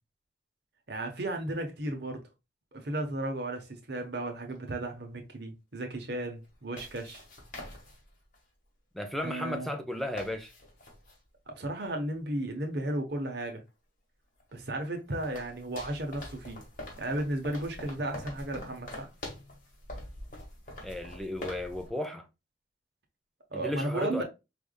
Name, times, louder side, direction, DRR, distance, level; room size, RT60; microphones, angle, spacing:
voice 1, 0.9-2.2 2.7-7.2 9.2-9.7 11.5-13.6 14.5-16.6 17.0-19.1 23.5-24.2, right 1 dB, 60° right, 1.0 m, -34 dB
sound 1, 3.6-3.7 6.4-8.4 9.2-9.3 9.5-9.6 9.9-11.2 13.7-13.8 14.4-21.9, left 1 dB, 45° left, 1.7 m, -45 dB
voice 2, 8.9-10.5 20.8-22.3 23.5-24.2, left 1 dB, ahead, 0.6 m, -34 dB
5.0 x 3.4 x 2.2 m
head